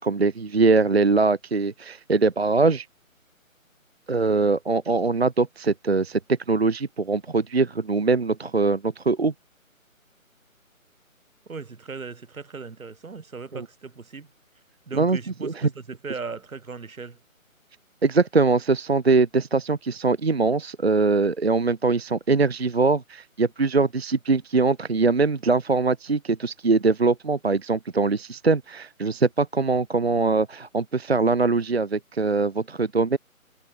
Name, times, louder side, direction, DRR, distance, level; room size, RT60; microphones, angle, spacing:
voice 1, 0.0-2.9 4.1-9.3 13.5-13.6 14.9-15.7 18.0-33.2, right 3 dB, 50° right, 0.6 m, -22 dB
voice 2, 11.5-14.3 14.9-17.2, right 4 dB, 75° right, 1.9 m, -37 dB
figure-of-eight pair, 180°, 42 cm